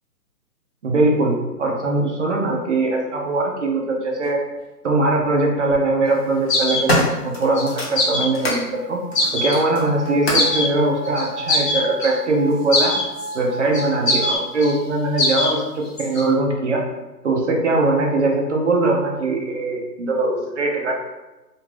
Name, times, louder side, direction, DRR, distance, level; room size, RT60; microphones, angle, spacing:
voice 1, 0.8-4.4 4.8-6.9 7.2-8.6 8.9-9.0 9.3-12.9 13.3-15.6 16.0-16.8 17.2-20.9, right 2 dB, 45° right, 0 dB, 0.6 m, -21 dB
sound 1, 4.2-4.3 5.4-5.8 6.3-8.6 9.1-10.6 11.4-11.5, equal, 40° left, 0.7 m, -25 dB
sound 2, 6.5-6.8 7.6-7.7 8.0-8.6 9.2-9.6 10.3-10.7 11.1-12.2 12.7-13.4 13.7-14.7 15.2-15.5 15.9-16.3, left 2 dB, 70° left, 0.9 m, -21 dB
sound 3, 8.1-14.4, right 1 dB, ahead, 0.8 m, -34 dB
2.5 x 2.3 x 3.1 m, 1.1 s
hypercardioid pair, 155°, 49 cm